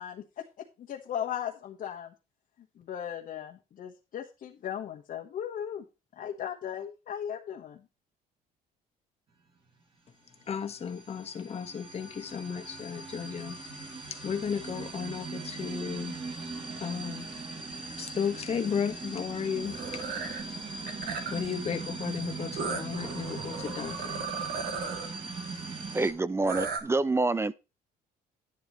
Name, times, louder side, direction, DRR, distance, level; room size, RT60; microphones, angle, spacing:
voice 1, 0.0-2.1 2.8-5.8 6.2-7.8, left 9 dB, 55° left, 1.3 m, -37 dB
sound 1, 10.4-26.1, right 3 dB, 35° right, 4.2 m, -40 dB
voice 2, 10.5-13.6 14.1-16.2 16.8-17.3 18.0-19.8 21.3-24.3, left 7 dB, 35° left, 1.4 m, -34 dB
sound 2, 19.6-20.4 20.9-21.5 22.6-25.1 26.4-26.8, right 5 dB, 70° right, 2.3 m, -35 dB
voice 3, 25.9-27.5, right 3 dB, 15° right, 0.4 m, -27 dB
11.0 x 9.1 x 3.1 m
cardioid pair, 110°, 17 cm